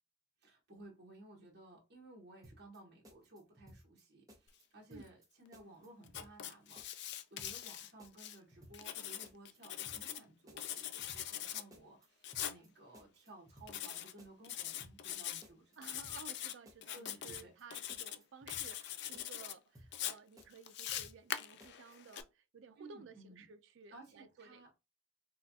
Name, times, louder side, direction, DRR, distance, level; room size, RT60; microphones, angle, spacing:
voice 1, 0.4-15.9 16.9-17.5 22.8-23.4 23.9-24.7, right 2 dB, 55° right, 1.2 m, -57 dB
sound 1, 2.4-2.8 3.0-4.0 4.3-4.6 4.9-5.3 5.5-6.5 6.8-7.1 7.4-7.7 8.0-9.0 9.2-9.6 9.9-10.2 10.5-11.4 11.7-12.1 12.3-12.7 12.9-13.9 14.2-14.5 14.8-15.2 15.4-16.4 16.7-17.0 17.3-17.6 17.9-18.9 19.1-19.5 19.8-20.1 20.4-21.3 21.6-22.0, equal, 20° right, 0.7 m, -59 dB
Writing, 6.1-8.4 8.7-10.2 10.6-11.6 12.2-12.6 13.7-14.1 14.4-15.4 15.8-16.5 16.8-17.4 17.7-18.2 18.5-19.5 19.9-22.2, left 11 dB, 55° left, 0.3 m, -42 dB
voice 2, 15.8-24.6, right 5 dB, 70° right, 0.4 m, -55 dB
4.3 x 2.3 x 2.7 m
head